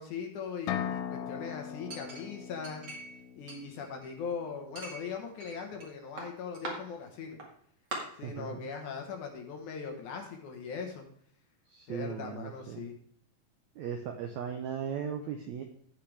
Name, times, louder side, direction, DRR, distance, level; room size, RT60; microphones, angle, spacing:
voice 1, 0.0-2.8 3.4-7.4 8.2-11.0 11.9-12.9, left 5 dB, 65° left, 3 dB, 2.5 m, -40 dB
sound 1, 0.7-4.4, left 9 dB, 90° left, 2.6 m, -39 dB
Chink clink, 1.9-3.2 3.5-4.3 4.8-5.9 6.2-6.7 7.4-7.5 7.9-8.0, right 2 dB, 35° right, 2.1 m, -42 dB
voice 2, 8.2-8.7 11.7-12.9 13.7-15.6, right 7 dB, 85° right, 5 dB, 1.6 m, -37 dB
15.5 x 5.7 x 3.4 m, 0.64 s
omnidirectional pair, 4.3 m